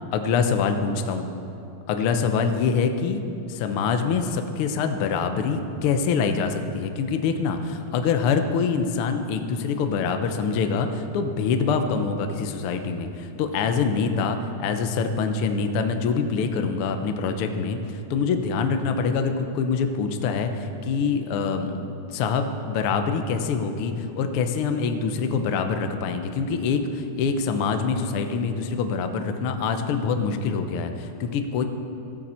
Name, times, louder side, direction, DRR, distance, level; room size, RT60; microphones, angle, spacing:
voice 1, 0.1-1.3 1.9-3.2 3.5-21.8 22.1-31.6, left 5 dB, 80° left, 6 dB, 1.2 m, -25 dB
15.5 x 13.0 x 4.4 m, 2.7 s
omnidirectional pair, 3.6 m